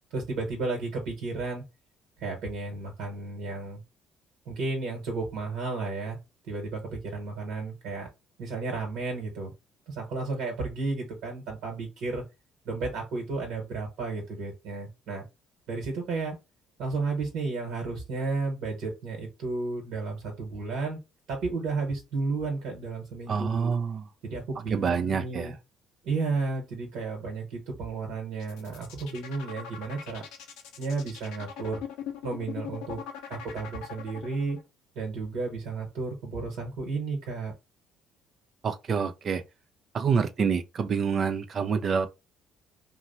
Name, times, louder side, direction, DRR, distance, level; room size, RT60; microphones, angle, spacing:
voice 1, 0.1-1.6 2.2-3.8 4.5-6.2 6.5-8.1 8.4-9.5 9.9-12.2 12.6-15.2 15.7-16.4 16.8-21.0 21.3-23.7 24.2-25.5 26.0-30.2 30.8-31.8 32.2-33.0 33.3-34.6 34.9-37.5, right 3 dB, 75° right, 1.1 m, -33 dB
voice 2, 23.3-24.0 24.7-25.5 38.6-39.4 39.9-42.1, right 6 dB, 50° right, 0.5 m, -27 dB
sound 1, 28.3-34.6, left 9 dB, 85° left, 0.7 m, -40 dB
2.8 x 2.0 x 4.0 m
supercardioid pair, 70°, 0 cm